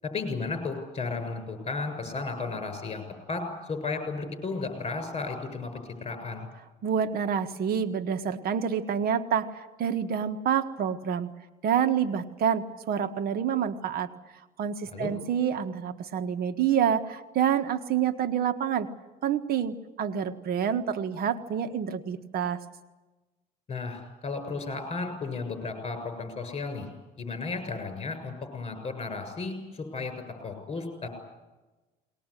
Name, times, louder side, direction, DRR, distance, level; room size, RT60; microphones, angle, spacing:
voice 1, 0.0-3.0 3.3-6.5 14.9-15.1 23.7-26.9 27.2-30.1 30.4-31.1, left 4 dB, 35° left, 8 dB, 7.0 m, -34 dB
voice 2, 6.8-11.3 11.6-14.1 14.6-18.9 19.2-22.6, right 8 dB, 65° right, 9 dB, 1.5 m, -27 dB
21.5 x 20.0 x 10.0 m, 1.2 s
cardioid pair, 110°, 17 cm